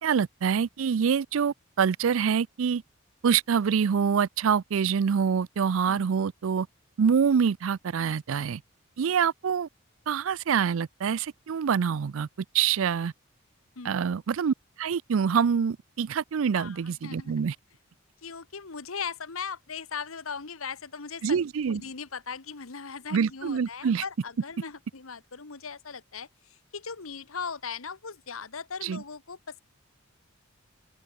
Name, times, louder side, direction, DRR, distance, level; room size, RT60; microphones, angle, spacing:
voice 1, 0.0-2.8 3.2-6.7 7.0-8.6 9.0-9.7 10.1-12.3 12.5-13.1 13.8-17.5 21.2-21.8 23.1-24.0 28.8-29.0, right 7 dB, 70° right, 0.4 m, -25 dB
voice 2, 13.7-14.2 16.5-17.4 18.2-21.4 21.7-29.6, left 6 dB, 85° left, 1.4 m, -39 dB
open air
head